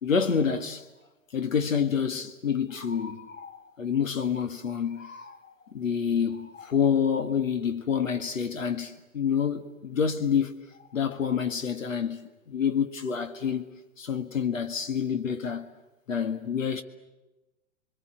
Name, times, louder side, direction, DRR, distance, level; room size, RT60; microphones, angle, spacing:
voice 1, 0.0-0.8 1.3-10.5 10.9-13.7 14.0-15.7 16.1-16.8, left 7 dB, 90° left, 1.9 m, -28 dB
29.5 x 24.0 x 7.7 m
hypercardioid pair, 125°, 38 cm